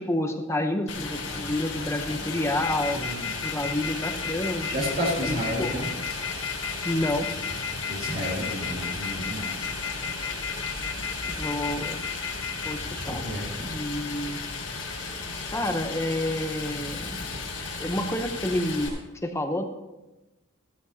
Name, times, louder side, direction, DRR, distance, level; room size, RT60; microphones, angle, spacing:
voice 1, 0.0-3.0 3.4-4.9 5.2-5.8 6.8-7.3 11.3-12.0 12.6-13.2 13.6-14.4 15.5-17.2 17.8-19.6, left 1 dB, 15° left, 5 dB, 0.7 m, -29 dB
Stream, 0.9-18.9, left 4 dB, 90° left, 4.2 m, -35 dB
sound 1, 1.3-19.0, right 2 dB, 85° right, 3.0 m, -49 dB
sound 2, 2.6-12.7, left 6 dB, 55° left, 1.3 m, -33 dB
voice 2, 4.7-5.9 7.9-9.6 12.9-13.7, equal, 45° right, -3 dB, 1.9 m, -31 dB
15.0 x 13.0 x 2.8 m, 1.1 s
head